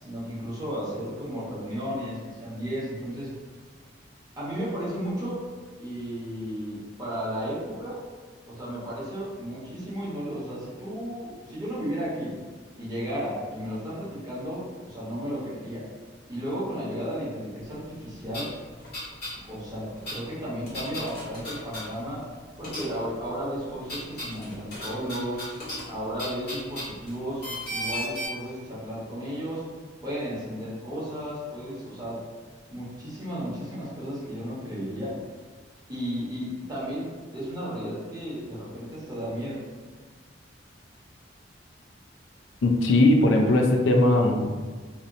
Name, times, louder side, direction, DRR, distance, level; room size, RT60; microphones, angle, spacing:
voice 1, 0.0-3.3 4.4-5.4 5.8-8.0 8.5-12.4 12.8-15.9 16.3-18.5 19.5-22.3 22.6-25.4 25.8-29.6 30.0-32.2 32.7-35.2 35.9-39.6, equal, 20° right, -9 dB, 0.9 m, -34 dB
sound 1, 17.9-18.0 18.3-19.4 19.6-22.3 22.6-23.2 23.5-28.3, equal, 60° left, 1.0 m, -36 dB
voice 2, 42.6-44.5, left 1 dB, 75° left, 1 dB, 0.4 m, -19 dB
2.8 x 2.0 x 2.6 m, 1.4 s
head